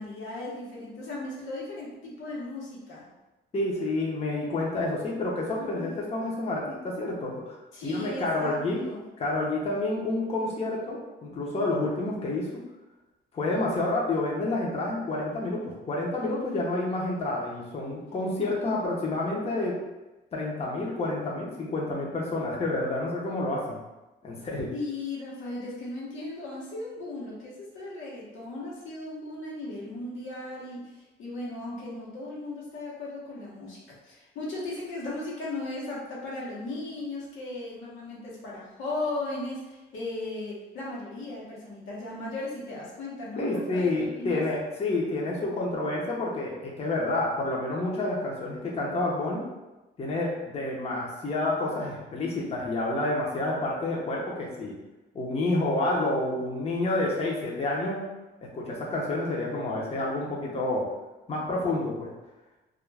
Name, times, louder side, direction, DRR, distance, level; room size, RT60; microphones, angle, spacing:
voice 1, 0.0-3.0 5.7-5.9 7.7-9.0 24.7-44.4, left 2 dB, 85° left, -5 dB, 0.9 m, -36 dB
voice 2, 3.5-7.6 7.8-8.8 9.2-12.6 13.3-19.7 20.3-23.8 24.2-24.7 43.4-49.4 50.0-54.7 55.1-58.0 58.5-60.8 61.3-62.1, left 2 dB, 30° left, -3 dB, 0.6 m, -29 dB
2.3 x 2.2 x 3.2 m, 1.1 s
cardioid pair, 90°, 20 cm